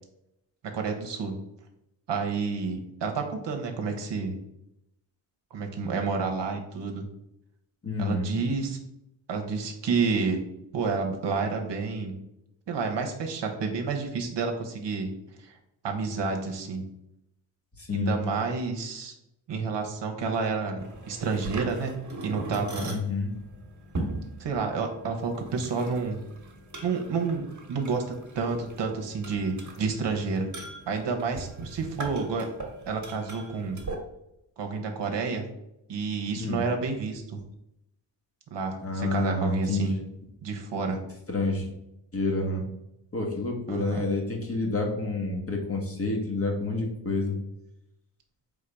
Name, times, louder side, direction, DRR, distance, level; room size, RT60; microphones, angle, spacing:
voice 1, 0.7-1.4 2.1-4.3 5.5-7.0 8.0-8.8 9.3-10.4 10.7-12.1 12.7-15.1 15.4-15.6 15.8-16.8 17.9-19.1 19.5-21.9 22.2-23.0 24.4-26.2 26.8-30.5 30.9-32.5 32.9-33.8 34.6-35.4 35.9-37.4 38.5-40.0 40.4-41.0 43.7-44.0, right 4 dB, 60° right, 3 dB, 1.0 m, -30 dB
voice 2, 7.8-8.3 17.9-18.1 22.8-23.3 36.4-36.6 38.8-40.0 41.3-41.6 42.1-42.6 43.1-47.3, left 3 dB, 30° left, 0 dB, 1.3 m, -28 dB
sound 1, 20.8-34.0, right 2 dB, 35° right, 1.3 m, -40 dB
3.8 x 3.6 x 3.5 m, 0.86 s
supercardioid pair, 50°, 48 cm